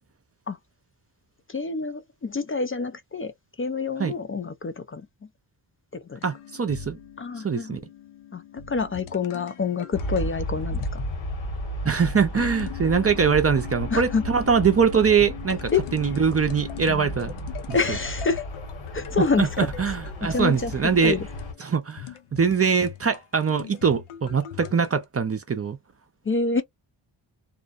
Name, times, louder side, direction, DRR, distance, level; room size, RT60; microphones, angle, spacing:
voice 1, 1.5-3.3 3.6-5.1 5.9-6.2 7.2-7.8 8.3-11.0 13.9-14.2 15.7-15.9 17.7-18.4 18.9-19.9 20.3-21.3 26.3-26.6, left 4 dB, 30° left, 0.4 m, -27 dB
sound 1, 6.2-11.2 12.1-25.0, left 10 dB, 85° left, 0.7 m, -41 dB
voice 2, 6.2-7.0 7.4-7.8 11.8-17.3 17.7-17.8 19.4-21.2 21.6-25.8, right 6 dB, 30° right, 0.5 m, -23 dB
Aircraft, 9.9-21.5, equal, 65° left, 1.4 m, -34 dB
2.5 x 2.1 x 2.4 m
cardioid pair, 75°, 49 cm